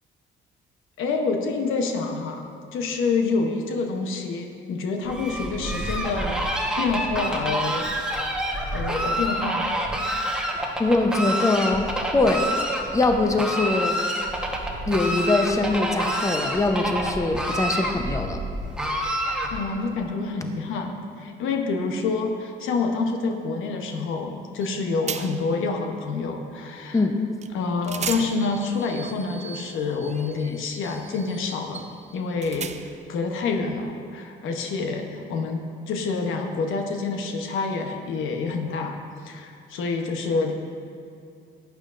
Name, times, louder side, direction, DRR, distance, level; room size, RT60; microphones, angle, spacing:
voice 1, 1.0-7.9 8.7-9.8 19.5-27.0 27.5-32.7 33.1-39.0 39.2-40.5, left 4 dB, 85° left, 4 dB, 0.9 m, -27 dB
Fowl, 5.0-19.8, equal, 5° right, 1.1 m, -28 dB
voice 2, 10.8-12.5 12.9-14.0 14.9-18.4 26.9-27.2, left 2 dB, 15° left, 5 dB, 0.7 m, -22 dB
sound 1, 24.6-24.7 25.1-25.6 27.4-27.5 27.8-33.1, right 7 dB, 35° right, 0.4 m, -37 dB
11.0 x 8.6 x 2.5 m, 2.5 s
cardioid pair, 90°, 20 cm